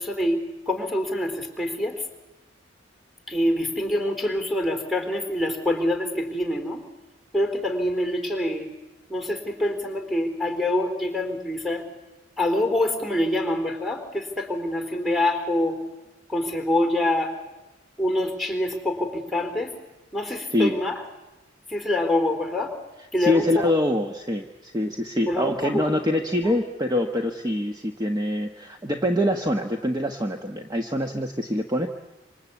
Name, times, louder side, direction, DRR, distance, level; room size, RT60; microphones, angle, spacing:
voice 1, 0.0-2.0 3.3-6.8 7.3-8.7 9.1-11.8 12.4-15.8 16.3-17.3 18.0-19.7 20.1-21.0 21.7-22.8 23.1-23.6 25.3-25.9 26.4-26.5, left 1 dB, ahead, 4 dB, 3.7 m, -25 dB
voice 2, 23.2-31.9, left 1 dB, 20° right, 4 dB, 1.2 m, -25 dB
26.5 x 26.0 x 8.5 m, 1.0 s
head